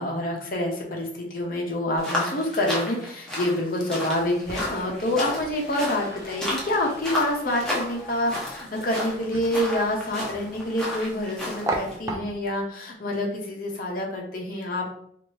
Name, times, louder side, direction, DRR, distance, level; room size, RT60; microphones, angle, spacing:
voice 1, 0.0-15.0, left 1 dB, 50° left, 0 dB, 0.7 m, -27 dB
sound 1, 2.0-12.0, left 1 dB, 5° left, 0.7 m, -33 dB
sound 2, 4.1-12.6, right 1 dB, 15° right, 0.3 m, -37 dB
2.8 x 2.5 x 3.1 m, 0.65 s
head